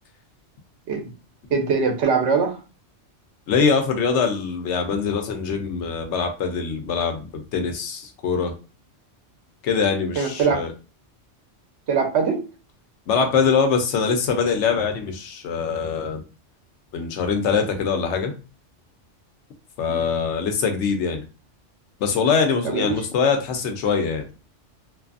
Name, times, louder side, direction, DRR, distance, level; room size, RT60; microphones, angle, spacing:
voice 1, 1.5-2.6 10.2-10.6 11.9-12.4 19.9-20.1 22.6-23.0, right 5 dB, 70° right, 3 dB, 0.9 m, -22 dB
voice 2, 3.5-8.5 9.6-10.7 13.1-16.2 16.9-18.3 19.8-21.2 22.0-24.2, left 5 dB, 75° left, 5 dB, 0.9 m, -23 dB
2.5 x 2.4 x 2.4 m, 0.33 s
omnidirectional pair, 1.2 m